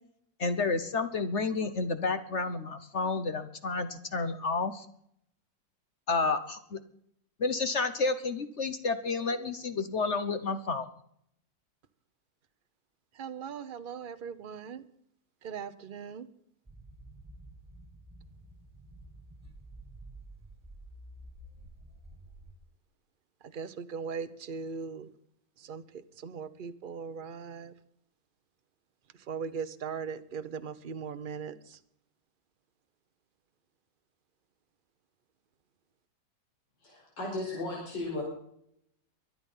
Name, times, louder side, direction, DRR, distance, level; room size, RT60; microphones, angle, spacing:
voice 1, 0.4-4.9 6.1-6.8 7.4-10.9, left 4 dB, 45° left, 10 dB, 1.1 m, -30 dB
voice 2, 13.2-14.8 15.4-16.3 23.5-25.1 25.6-25.8 26.2-27.7 29.3-31.8, right 6 dB, 40° right, 12 dB, 0.8 m, -39 dB
sound 1, 16.7-22.5, right 1 dB, 10° right, 1.0 m, -50 dB
voice 3, 36.8-38.2, left 2 dB, 85° left, -2 dB, 5.6 m, -35 dB
23.5 x 8.9 x 5.6 m, 0.69 s
omnidirectional pair, 1.9 m